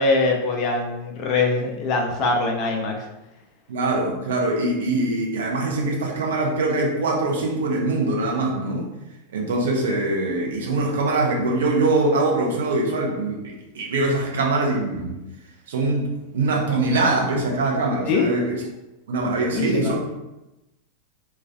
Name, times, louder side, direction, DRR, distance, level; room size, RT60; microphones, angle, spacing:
voice 1, 0.0-3.0 18.0-18.3 19.5-19.9, left 3 dB, 35° left, 1 dB, 0.4 m, -23 dB
voice 2, 3.7-8.9 9.3-15.1 15.7-18.6 19.1-20.0, right 2 dB, 60° right, -1 dB, 0.5 m, -23 dB
2.3 x 2.3 x 2.3 m, 0.96 s
figure-of-eight pair, 90°, 0 cm